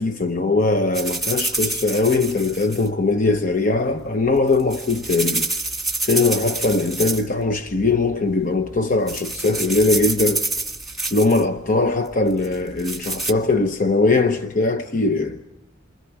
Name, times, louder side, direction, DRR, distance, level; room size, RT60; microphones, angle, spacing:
voice 1, 0.0-5.5 6.0-10.4 11.1-15.4, left 3 dB, 40° left, 0.9 m, -20 dB
sound 1, 0.9-2.9 4.4-7.4 7.7-8.1 8.6-8.8 9.1-11.4 12.4-13.3, right 2 dB, ahead, 1.9 m, -27 dB
28.5 x 25.0 x 6.0 m
head